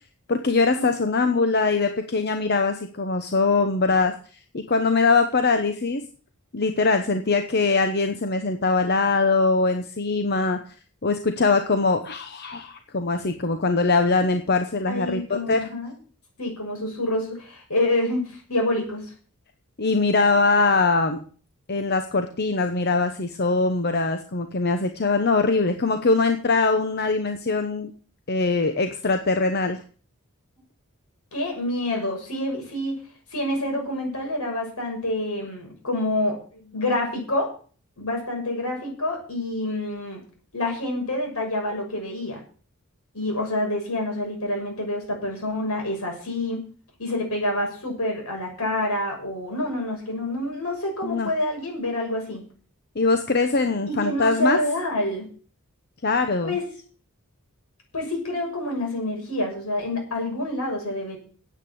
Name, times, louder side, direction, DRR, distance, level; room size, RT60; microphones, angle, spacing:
voice 1, 0.3-4.1 4.5-6.0 6.5-10.7 11.0-15.7 19.8-21.2 21.7-27.9 28.3-29.8 51.0-51.3 52.9-54.6 56.0-56.6, left 3 dB, 45° left, 7 dB, 1.0 m, -22 dB
voice 2, 14.9-15.9 16.4-19.1 31.3-32.9 33.3-37.5 38.0-40.2 40.5-42.4 43.1-46.6 47.0-52.4 53.9-55.3 56.4-56.6 57.9-61.2, left 1 dB, 75° left, 1 dB, 6.4 m, -27 dB
9.8 x 8.3 x 8.6 m, 0.42 s
head